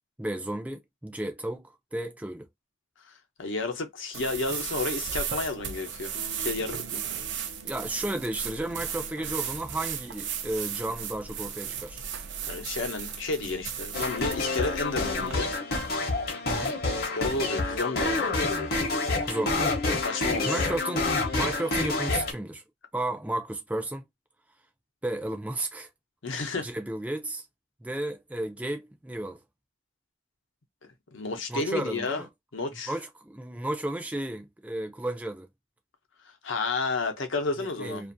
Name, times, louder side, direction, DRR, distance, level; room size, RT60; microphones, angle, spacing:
voice 1, 0.2-2.5 7.6-12.0 16.5-16.7 19.2-20.0 20.5-22.6 22.9-24.0 25.0-25.9 26.6-27.5 27.8-29.4 31.5-32.3 32.9-35.5 37.6-38.1, right 1 dB, 5° right, 0.3 m, -33 dB
voice 2, 3.1-7.0 12.4-15.5 15.8-15.9 17.0-18.3 19.9-20.7 26.2-26.7 31.1-32.2 32.5-32.9 36.4-38.0, left 3 dB, 75° left, 0.8 m, -31 dB
sound 1, 4.1-15.3, right 8 dB, 65° right, 0.5 m, -35 dB
sound 2, 6.1-9.3, left 1 dB, 85° right, 0.9 m, -48 dB
sound 3, 13.9-22.3, left 3 dB, 50° left, 0.8 m, -28 dB
2.5 x 2.5 x 2.5 m
head